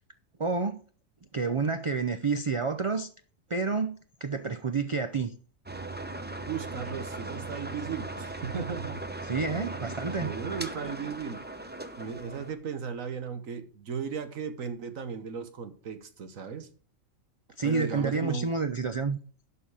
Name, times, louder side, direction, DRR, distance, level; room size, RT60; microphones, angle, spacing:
voice 1, 0.4-0.8 1.3-3.1 3.5-4.0 4.2-5.3 9.2-10.3 17.6-19.2, right 4 dB, 55° right, 0.3 m, -29 dB
sound 1, 5.7-12.5, right 2 dB, 10° right, 0.7 m, -38 dB
voice 2, 6.5-9.0 9.6-9.9 10.2-11.4 12.0-16.7 17.6-18.5, right 6 dB, 80° right, 1.6 m, -36 dB
11.5 x 5.7 x 4.8 m
omnidirectional pair, 1.4 m